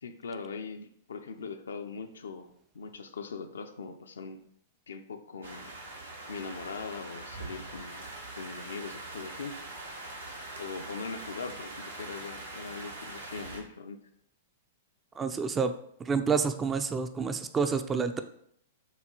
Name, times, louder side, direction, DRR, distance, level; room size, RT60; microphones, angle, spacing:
voice 1, 0.0-2.5 2.7-4.4 4.9-5.7 6.3-8.0 8.4-9.6 10.6-14.0, left 5 dB, 70° left, 7 dB, 0.4 m, -41 dB
sound 1, 5.4-13.6, right 2 dB, 80° right, 0.9 m, -43 dB
sound 2, 7.9-13.6, right 3 dB, 55° right, 1.1 m, -54 dB
voice 2, 15.2-15.7 16.0-18.2, right 5 dB, 20° right, 9 dB, 0.3 m, -28 dB
6.8 x 2.3 x 2.9 m, 0.68 s
figure-of-eight pair, 105°, 0 cm